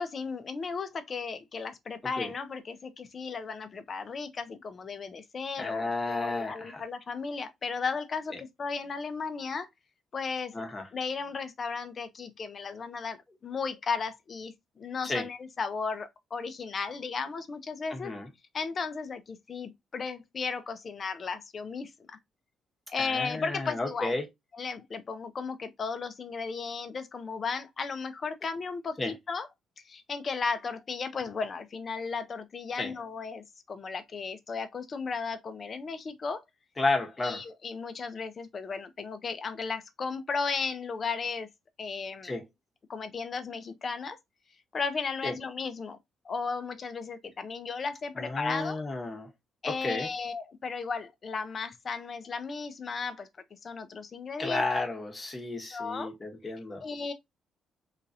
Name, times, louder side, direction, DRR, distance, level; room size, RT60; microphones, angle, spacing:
voice 1, 0.0-9.7 10.1-10.6 10.9-18.1 18.5-22.2 22.9-24.1 24.6-29.5 29.8-36.4 37.2-41.5 41.8-42.3 42.9-44.2 44.7-46.0 46.2-48.8 49.6-53.3 53.6-54.6 55.7-56.1 56.4-56.5 56.8-57.1, left 5 dB, 45° left, 0.6 m, -35 dB
voice 2, 5.6-6.8 8.3-8.4 10.5-10.9 15.0-15.3 17.9-18.3 23.0-24.2 29.0-29.1 32.8-32.9 36.8-37.4 42.2-42.4 45.2-45.3 48.1-49.3 49.7-50.1 54.4-56.8, left 2 dB, 25° left, 1.1 m, -32 dB
2.9 x 2.5 x 2.6 m
cardioid pair, 90°, 0 cm